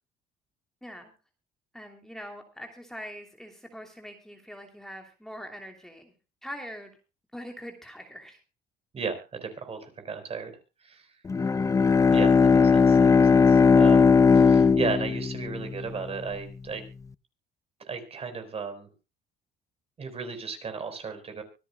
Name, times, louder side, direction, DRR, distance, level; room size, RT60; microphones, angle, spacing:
voice 1, 0.8-1.1 1.7-6.1 6.4-6.9 7.3-8.4, equal, 5° left, 4 dB, 2.8 m, -42 dB
voice 2, 8.9-10.5 10.8-11.1 12.1-14.1 14.3-16.8 17.9-18.9 20.0-21.4, right 5 dB, 35° right, 8 dB, 4.4 m, -35 dB
Bowed string instrument, 11.3-16.1, left 5 dB, 20° left, 0.5 m, -19 dB
24.5 x 11.0 x 2.2 m, 0.31 s
cardioid pair, 110°, 17 cm